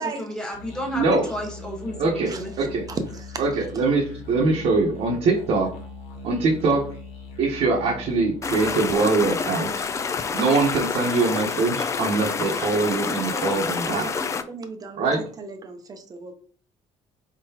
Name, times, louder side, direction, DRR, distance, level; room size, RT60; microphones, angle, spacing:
voice 1, 0.2-2.7, equal, 5° left, -1 dB, 1.3 m, -32 dB
sound 1, 0.5-8.7, left 3 dB, 65° left, 1.3 m, -40 dB
voice 2, 2.0-2.3 2.6-2.8 3.4-5.7 6.2-6.8 7.4-9.7 10.3-14.1 14.9-15.2, right 3 dB, 60° right, -2 dB, 1.1 m, -22 dB
voice 3, 2.9-3.4 12.5-12.8 13.3-13.4 13.8-14.1 14.5-16.3, right 4 dB, 30° right, 7 dB, 0.7 m, -34 dB
sound 2, 8.4-14.4, left 5 dB, 25° left, 0.3 m, -28 dB
4.3 x 3.8 x 2.8 m, 0.43 s
cardioid pair, 145°, 13 cm